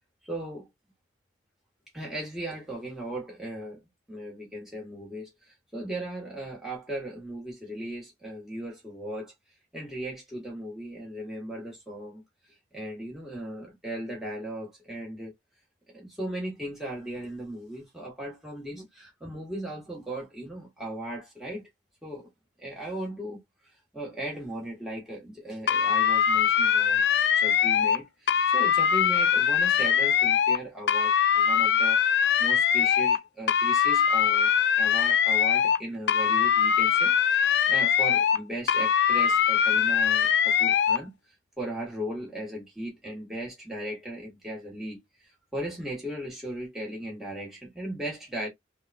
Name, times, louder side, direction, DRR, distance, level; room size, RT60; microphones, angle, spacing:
voice 1, 0.3-0.7 1.9-3.8 4.1-9.3 9.7-12.2 12.7-15.3 15.9-21.7 22.0-22.3 22.6-23.4 23.9-27.0 27.4-32.0 32.4-34.5 34.8-41.1 41.6-45.0 45.5-48.5, right 1 dB, ahead, 1.1 m, -37 dB
sound 1, 25.7-28.0 28.3-30.6 30.9-33.2 33.5-35.8 36.1-38.4 38.7-41.0, left 8 dB, 60° left, 0.3 m, -22 dB
3.3 x 2.1 x 2.5 m
head